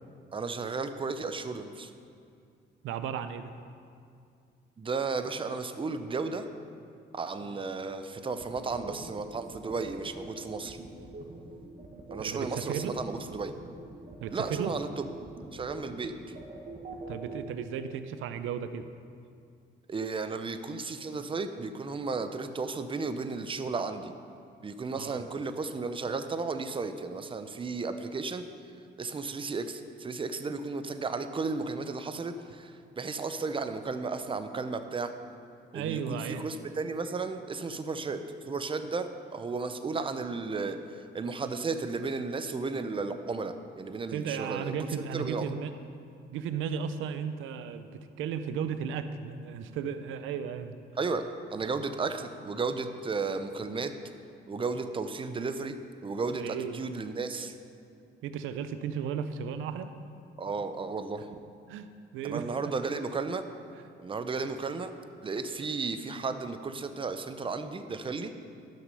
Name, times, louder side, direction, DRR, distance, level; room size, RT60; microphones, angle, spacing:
voice 1, 0.3-1.9 4.8-6.5 7.1-10.8 12.1-13.5 14.3-15.1 15.5-16.3 19.9-24.1 24.6-28.4 29.0-35.1 35.7-38.2 38.5-45.5 51.0-53.9 54.5-55.8 56.0-56.4 56.7-57.5 60.4-61.3 62.2-63.4 64.0-64.9 65.2-68.5, right 4 dB, 25° right, 9 dB, 0.6 m, -34 dB
voice 2, 2.8-3.5 7.4-7.6 12.2-13.0 14.2-14.7 17.1-18.9 25.0-25.2 35.7-36.5 44.1-45.7 46.3-50.8 56.4-56.8 58.2-59.9 61.7-61.9 62.1-62.5 64.4-64.6, right 7 dB, 90° right, 10 dB, 0.6 m, -35 dB
sound 1, 8.4-17.4, right 2 dB, 40° right, 1.5 m, -44 dB
11.5 x 6.2 x 5.4 m, 2.4 s
cardioid pair, 90°, 20 cm